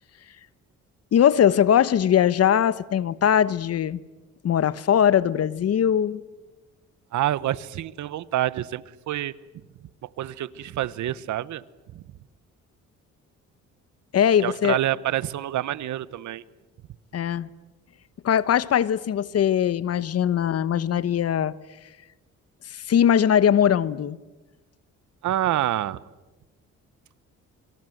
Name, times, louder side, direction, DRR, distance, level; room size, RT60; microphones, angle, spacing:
voice 1, 1.1-4.0 4.4-6.2 14.1-14.8 17.1-17.5 18.2-21.5 22.7-24.2, left 9 dB, 55° left, 1.0 m, -21 dB
voice 2, 7.1-9.3 10.0-11.6 11.9-12.0 14.4-16.4 25.2-26.0, right 13 dB, 70° right, 1.0 m, -27 dB
28.5 x 24.5 x 7.9 m
cardioid pair, 90°, 30 cm